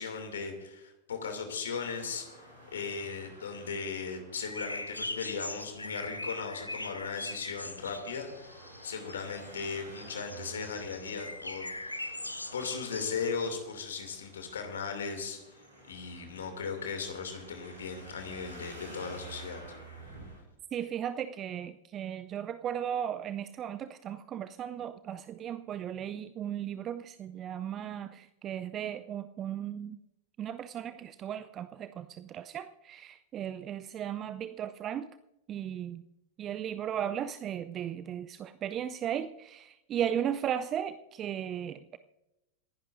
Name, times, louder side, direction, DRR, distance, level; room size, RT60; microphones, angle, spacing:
voice 1, 0.0-2.2 2.7-12.2 12.5-15.4 15.9-19.6, left 5 dB, 65° left, 5 dB, 2.6 m, -37 dB
Traffic noise roadway noise, 1.7-20.4, right 1 dB, 80° right, 6.2 m, -52 dB
sound 1, 4.4-13.6, left 2 dB, 85° left, 0.6 m, -41 dB
voice 2, 20.7-30.0 30.4-35.1 35.5-36.0 36.4-42.0, right 9 dB, 30° right, 13 dB, 0.5 m, -36 dB
27.5 x 11.0 x 2.6 m, 0.93 s
figure-of-eight pair, 90°, 0 cm